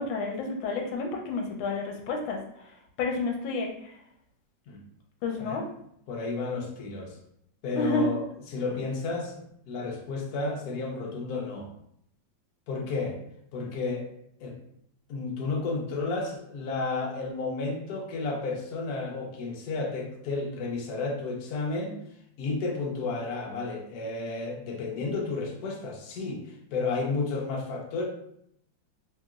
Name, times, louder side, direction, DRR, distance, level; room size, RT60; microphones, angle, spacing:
voice 1, 0.0-2.4 3.0-3.7 5.2-5.6 7.7-8.1, left 3 dB, 85° left, 1 dB, 1.4 m, -30 dB
voice 2, 6.1-7.1 7.6-9.4 9.7-11.7 12.7-13.2 13.5-14.1 14.4-14.6 15.1-21.9 22.4-26.4 26.7-28.1, left 3 dB, 70° left, 0 dB, 1.0 m, -32 dB
2.9 x 2.9 x 2.3 m, 0.72 s
omnidirectional pair, 2.1 m